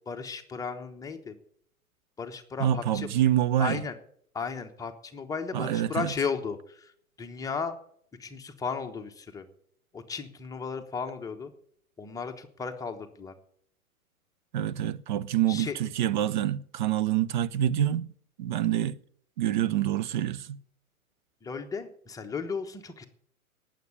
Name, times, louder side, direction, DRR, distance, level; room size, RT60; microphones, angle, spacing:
voice 1, 0.1-1.3 2.2-3.1 3.6-4.0 4.3-6.9 7.2-7.8 8.2-9.5 9.9-11.5 12.0-13.3 15.5-15.8 21.4-23.1, left 5 dB, 10° left, 1.0 m, -35 dB
voice 2, 2.6-3.8 5.5-6.1 14.5-18.1 18.4-19.0 19.4-20.6, right 11 dB, 35° right, 0.6 m, -26 dB
19.0 x 7.5 x 7.0 m
figure-of-eight pair, 115°, 43 cm